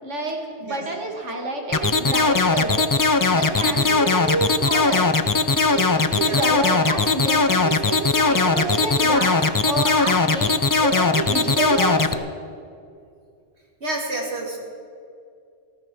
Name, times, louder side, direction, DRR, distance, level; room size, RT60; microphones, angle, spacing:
voice 1, 0.0-2.8 3.3-5.1 5.5-12.1, right 2 dB, 85° right, 1 dB, 2.5 m, -28 dB
sound 1, 1.7-12.1, left 3 dB, 35° left, 0.3 m, -19 dB
voice 2, 3.7-4.1 6.2-6.5 13.8-14.6, right 2 dB, 65° right, -1 dB, 2.9 m, -30 dB
15.5 x 14.0 x 6.1 m, 2.3 s
omnidirectional pair, 1.2 m